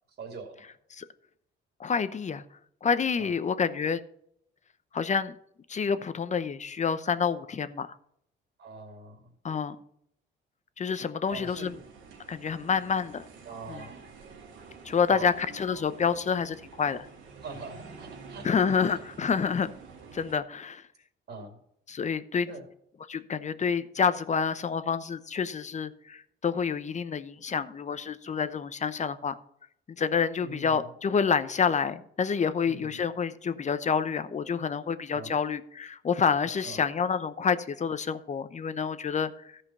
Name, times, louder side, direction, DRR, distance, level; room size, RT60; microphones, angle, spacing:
voice 1, 0.1-0.7 3.2-3.3 8.6-9.3 11.3-11.8 13.4-14.0 15.1-15.4 17.4-18.5 21.3-21.6 22.5-22.7 30.4-30.9 32.6-33.0 35.1-35.4 36.6-36.9, right 3 dB, 60° right, 2 dB, 2.5 m, -43 dB
voice 2, 1.8-2.4 2.8-4.0 4.9-5.4 5.7-7.9 9.4-9.8 10.8-11.7 12.3-13.2 13.7-13.8 14.8-17.1 18.4-19.7 20.1-20.8 21.9-22.5 23.1-29.4 30.0-39.6, left 6 dB, 35° left, 13 dB, 0.8 m, -28 dB
sound 1, 11.3-20.3, right 5 dB, 85° right, 2.4 m, -48 dB
14.0 x 5.1 x 5.6 m, 0.71 s
cardioid pair, 90°, 20 cm